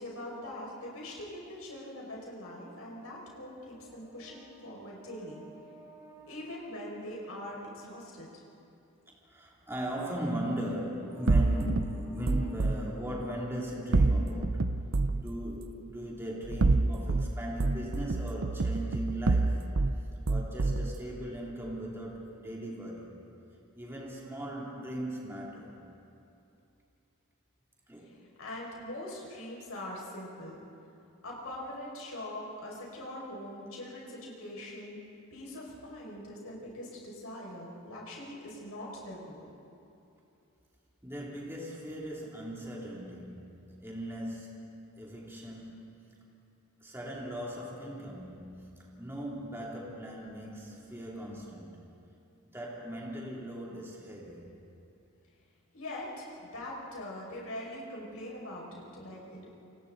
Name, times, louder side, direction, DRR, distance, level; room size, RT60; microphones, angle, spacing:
voice 1, 0.0-5.5 6.3-8.4 28.0-30.6 31.2-35.0 35.3-39.5 55.7-59.5, left 1 dB, 75° left, -4 dB, 5.8 m, -42 dB
voice 2, 3.8-6.5 9.1-14.7 15.1-19.6 20.0-23.1 23.7-25.8 27.9-28.2 41.0-46.2 46.8-51.7 52.4-54.5, equal, 10° right, -4 dB, 2.9 m, -39 dB
sound 1, 11.3-12.8 13.9-15.2 16.4-17.3 17.6-19.9 20.3-20.9, right 3 dB, 60° right, 0.6 m, -27 dB
28.5 x 25.5 x 4.0 m, 2.7 s
head